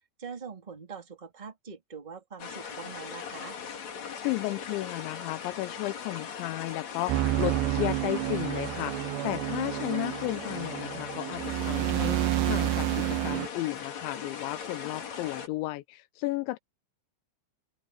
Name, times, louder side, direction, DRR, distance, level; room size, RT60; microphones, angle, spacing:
voice 1, 0.2-3.6, right 6 dB, 15° right, 1.9 m, -43 dB
sound 1, 2.4-15.5, left 7 dB, 45° left, 3.0 m, -39 dB
voice 2, 4.2-16.6, left 18 dB, 80° left, 3.0 m, -34 dB
sound 2, 7.1-13.5, right 16 dB, 75° right, 2.7 m, -29 dB
omnidirectional pair, 5.4 m